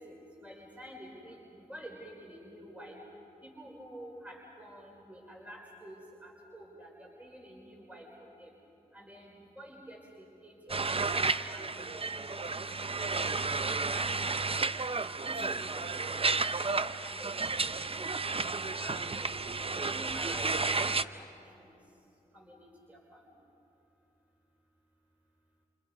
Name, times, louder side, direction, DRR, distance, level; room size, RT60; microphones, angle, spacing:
voice 1, 0.0-3.0 3.4-8.1 8.4-8.5 8.9-12.5 12.8-14.8 15.2-19.3 19.7-21.3 21.6-21.8 22.3-23.3, equal, 10° right, -2 dB, 5.0 m, -50 dB
sound 1, 10.7-21.0, right 3 dB, 35° right, 0.7 m, -32 dB
29.0 x 28.5 x 5.3 m, 2.8 s
cardioid pair, 40°, 16 cm